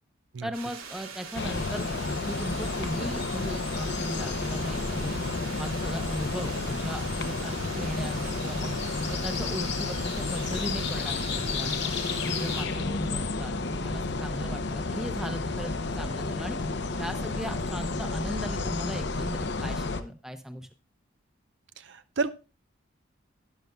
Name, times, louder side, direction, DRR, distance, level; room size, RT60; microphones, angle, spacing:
voice 1, 0.4-1.9 2.2-5.2 5.6-8.7 9.1-11.9 12.2-15.7 16.0-16.6 17.0-20.7, equal, ahead, 7 dB, 0.8 m, -37 dB
sound 1, 0.5-12.6, right 5 dB, 90° right, 2.5 m, -42 dB
sound 2, 1.3-20.0, left 3 dB, 55° left, 0.7 m, -31 dB
voice 2, 21.9-22.3, right 4 dB, 55° right, 12 dB, 0.5 m, -30 dB
12.0 x 10.5 x 2.3 m, 0.33 s
head